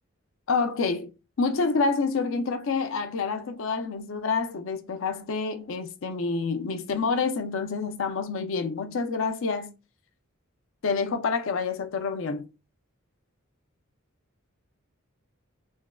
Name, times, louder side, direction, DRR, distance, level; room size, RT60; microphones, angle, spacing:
voice 1, 0.5-1.1 1.4-9.7 10.8-12.5, left 4 dB, 65° left, 0.5 m, -28 dB
3.4 x 2.0 x 2.2 m
head